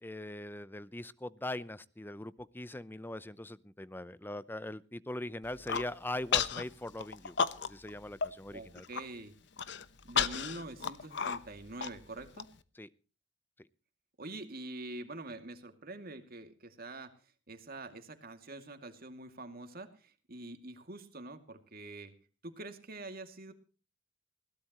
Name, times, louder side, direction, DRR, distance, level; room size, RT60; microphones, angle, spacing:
voice 1, 0.0-7.4 7.6-8.9 12.8-12.9, left 1 dB, 10° left, 16 dB, 0.7 m, -41 dB
Human voice, 5.4-5.9 6.3-6.6 7.0-7.9 8.2-8.3 8.7-9.0 9.6-12.4, left 7 dB, 65° left, 1.0 m, -32 dB
voice 2, 8.5-9.3 10.0-12.5 14.2-17.1 17.5-22.1 22.4-23.5, right 2 dB, 50° right, 7 dB, 2.5 m, -45 dB
21.0 x 17.5 x 3.0 m, 0.36 s
head